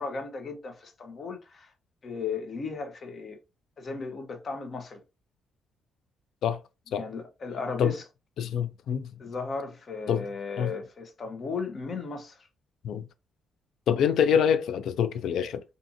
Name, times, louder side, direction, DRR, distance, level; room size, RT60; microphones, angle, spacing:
voice 1, 0.0-1.7 2.0-3.4 3.8-5.0 6.9-8.0 9.2-12.4, left 4 dB, 45° left, 0.7 m, -35 dB
voice 2, 8.4-9.1 10.1-10.2 10.6-10.7 12.8-13.1 13.9-15.6, left 8 dB, 75° left, 0.3 m, -25 dB
2.6 x 2.5 x 2.5 m
cardioid pair, 90°, 0 cm